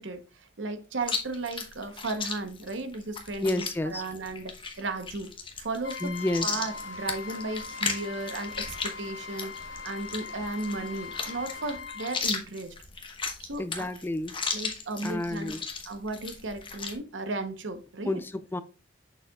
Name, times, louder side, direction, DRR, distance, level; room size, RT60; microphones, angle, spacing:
voice 1, 0.0-5.3 5.6-12.7 13.4-13.9 14.5-15.5 15.8-18.2, right 2 dB, 70° right, 0.9 m, -35 dB
Chewing mastication, 1.0-17.0, left 5 dB, 25° left, 1.0 m, -36 dB
voice 2, 3.4-4.0 6.0-6.6 13.6-14.4 15.0-15.6 18.1-18.6, left 1 dB, 10° left, 0.3 m, -30 dB
Trumpet, 5.8-12.2, left 5 dB, 70° left, 1.2 m, -41 dB
sound 1, 6.1-11.8, left 4 dB, 90° left, 1.3 m, -50 dB
6.5 x 6.5 x 2.3 m
head